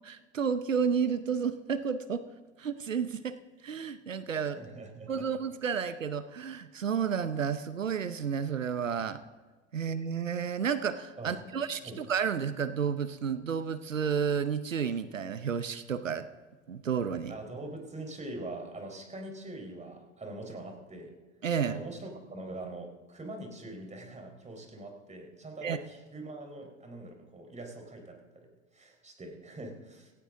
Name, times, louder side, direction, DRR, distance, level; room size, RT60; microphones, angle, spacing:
voice 1, 0.0-2.3 2.6-3.4 3.6-4.6 5.1-9.2 9.7-16.3 16.7-17.3 21.4-21.8 25.6-25.8, right 7 dB, 90° right, 13 dB, 0.7 m, -31 dB
voice 2, 4.5-5.3 11.2-11.6 11.8-12.0 17.3-21.1 21.6-28.2 28.7-30.1, right 2 dB, 20° right, 3 dB, 4.0 m, -43 dB
17.0 x 16.5 x 3.7 m, 1.3 s
figure-of-eight pair, 75°, 37 cm